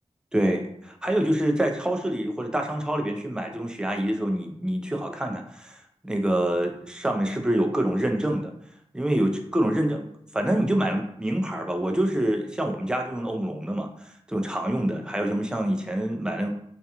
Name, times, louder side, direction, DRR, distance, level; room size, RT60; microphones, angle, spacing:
voice 1, 0.3-8.5 8.9-10.1 10.3-16.5, right 1 dB, 5° right, 3 dB, 0.3 m, -26 dB
2.3 x 2.2 x 2.8 m, 0.72 s
wide cardioid pair, 80°, 11 cm